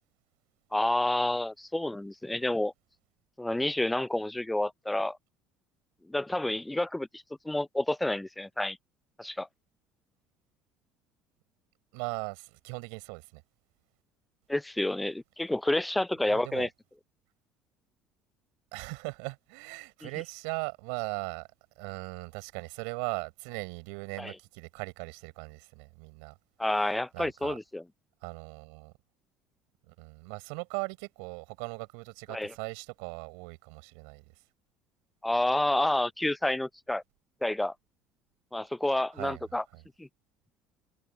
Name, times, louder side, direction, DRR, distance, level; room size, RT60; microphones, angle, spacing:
voice 1, 0.7-2.7 3.4-5.2 6.1-8.8 9.2-9.5 14.5-16.7 24.2-24.3 26.6-27.8 32.3-32.5 35.2-37.0 37.4-37.7 38.5-39.6 40.0-40.1, left 1 dB, 10° left, 0.4 m, -29 dB
voice 2, 11.9-13.4 16.2-16.7 18.7-21.5 21.8-26.4 26.8-26.9 27.1-27.6 28.2-28.9 29.9-34.2 39.1-39.4 39.7-39.8, right 35 dB, 80° right, 5.0 m, -39 dB
supercardioid pair, 75°, 0 cm